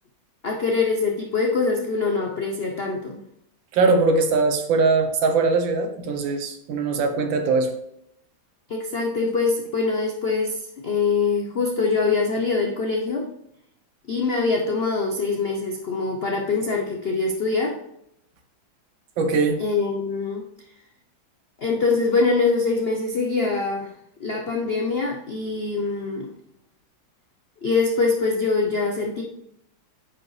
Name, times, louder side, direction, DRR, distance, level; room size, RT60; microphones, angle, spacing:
voice 1, 0.4-3.2 8.7-13.3 14.1-17.8 19.6-20.4 21.6-23.9 24.2-26.3 27.6-29.2, left 4 dB, 80° left, 1 dB, 0.5 m, -24 dB
voice 2, 3.7-7.7 19.2-19.6, right 4 dB, 70° right, 5 dB, 1.6 m, -21 dB
9.6 x 5.0 x 3.3 m, 0.78 s
omnidirectional pair, 2.2 m